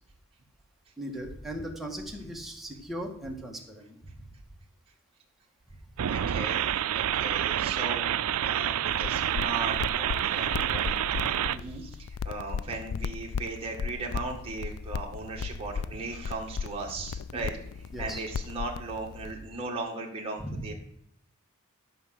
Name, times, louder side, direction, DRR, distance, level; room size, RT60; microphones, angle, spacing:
voice 1, 1.0-4.0 8.7-8.8 10.7-10.8 11.5-11.8 17.3-17.6 17.9-18.2 20.4-20.7, right 1 dB, ahead, 0 dB, 1.9 m, -38 dB
voice 2, 6.0-17.6 18.0-20.7, right 3 dB, 25° right, -2 dB, 1.8 m, -37 dB
sound 1, 6.0-11.6, right 10 dB, 75° right, 0.4 m, -28 dB
sound 2, 8.9-19.3, left 6 dB, 75° left, 0.4 m, -36 dB
12.5 x 5.5 x 7.7 m, 0.71 s
head